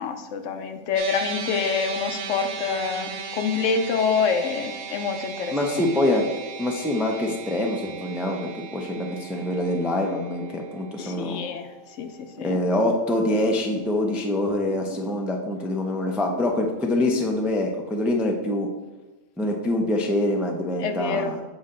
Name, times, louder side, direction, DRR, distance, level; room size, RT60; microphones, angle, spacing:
voice 1, 0.0-5.8 6.1-6.2 11.0-11.7 12.0-12.6 20.8-21.3, left 5 dB, 70° left, 7 dB, 0.9 m, -27 dB
sound 1, 1.0-13.4, right 6 dB, 75° right, 1.2 m, -37 dB
voice 2, 5.5-6.2 6.6-11.5 12.4-18.7 19.4-21.4, left 1 dB, ahead, 1 dB, 0.3 m, -25 dB
sound 2, 9.6-10.6 11.0-11.6 12.4-12.9 13.3-14.3 14.7-15.2 16.1-16.6, left 2 dB, 45° left, 0.8 m, -41 dB
7.2 x 4.1 x 3.8 m, 1.2 s
omnidirectional pair, 1.4 m